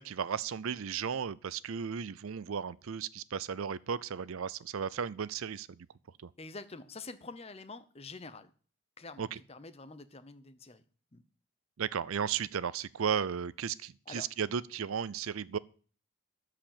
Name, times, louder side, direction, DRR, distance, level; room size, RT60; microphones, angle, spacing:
voice 1, 0.0-5.8 6.2-6.3 9.2-9.4 11.8-15.6, right 7 dB, 75° right, 0.5 m, -35 dB
voice 2, 6.4-8.5 9.0-10.8 11.1-11.2 14.1-14.3, left 3 dB, 30° left, 0.8 m, -47 dB
13.5 x 5.0 x 8.7 m
head